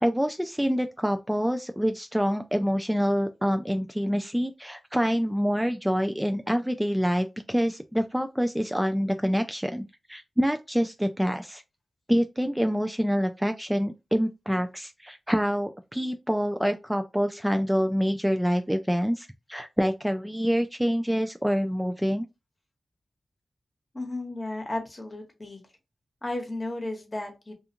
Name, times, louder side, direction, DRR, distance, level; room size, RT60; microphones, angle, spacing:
voice 1, 0.0-11.6 12.1-22.3, equal, 5° right, 0.3 m, -26 dB
voice 2, 23.9-25.6 26.2-27.5, left 2 dB, 35° left, 1.1 m, -34 dB
2.4 x 2.3 x 2.8 m
cardioid pair, 45°, 0 cm